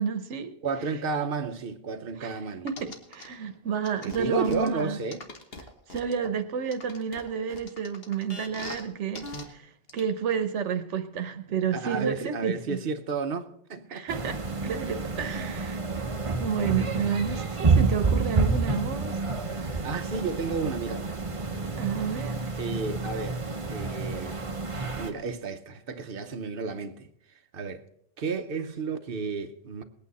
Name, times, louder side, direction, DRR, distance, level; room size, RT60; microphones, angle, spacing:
voice 1, 0.0-0.5 2.2-2.3 2.6-2.7 3.1-5.0 5.9-12.8 13.9-15.8 16.4-19.2 19.5-19.9 21.8-22.5, right 7 dB, 85° right, 1.2 m, -30 dB
voice 2, 0.6-2.7 4.0-5.3 11.7-14.2 19.8-21.2 22.6-24.4 25.0-27.1 27.5-27.8 28.2-29.8, right 4 dB, 55° right, 1.0 m, -32 dB
sound 1, 2.7-3.3 3.8-6.3 6.7-8.8 9.1-9.4 9.9-10.0, left 2 dB, 60° left, 1.6 m, -40 dB
sound 2, 14.1-25.1, right 4 dB, 30° right, 1.0 m, -29 dB
19.5 x 8.9 x 4.1 m
omnidirectional pair, 1.2 m